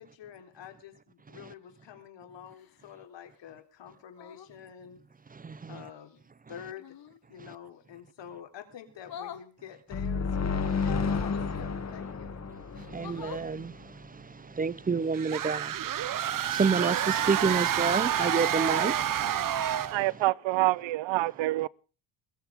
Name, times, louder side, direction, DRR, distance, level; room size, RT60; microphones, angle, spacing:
voice 1, 0.0-5.0 5.7-6.2 6.5-7.0 7.3-10.3 10.7-12.4, left 9 dB, 65° left, 3.8 m, -47 dB
sound 1, 2.4-2.9 4.1-4.5 6.8-7.2 9.0-9.5 11.0-11.5 12.3-12.4 12.7-13.5 15.1-15.3, left 9 dB, 50° left, 1.9 m, -45 dB
voice 2, 5.4-5.8 12.9-13.7 14.6-15.7 16.5-18.9, right 5 dB, 20° right, 0.6 m, -28 dB
sound 2, 9.9-13.6, left 5 dB, 35° left, 2.3 m, -31 dB
sound 3, 15.1-20.1, right 10 dB, 45° right, 0.9 m, -28 dB
voice 3, 19.9-21.7, right 18 dB, 75° right, 0.8 m, -27 dB
21.5 x 14.5 x 3.6 m
cardioid pair, 100°, 46 cm